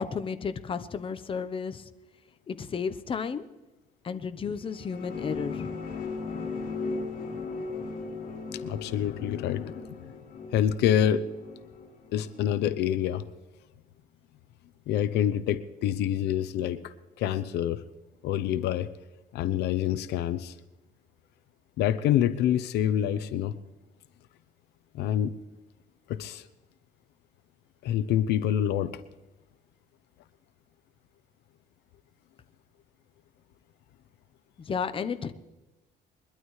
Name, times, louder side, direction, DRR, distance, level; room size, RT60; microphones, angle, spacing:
voice 1, 0.0-1.8 2.5-3.4 4.0-5.7 34.7-35.3, left 6 dB, 30° left, 10 dB, 0.9 m, -32 dB
sound 1, 4.5-13.2, left 4 dB, 55° left, 6.0 m, -38 dB
voice 2, 8.5-9.9 10.5-11.2 12.1-13.2 14.9-17.8 18.2-18.9 19.3-20.5 21.8-23.5 24.9-25.3 26.1-26.4 27.8-29.0, left 10 dB, 80° left, 13 dB, 0.7 m, -27 dB
22.5 x 12.5 x 3.2 m, 1.1 s
cardioid pair, 110°, 17 cm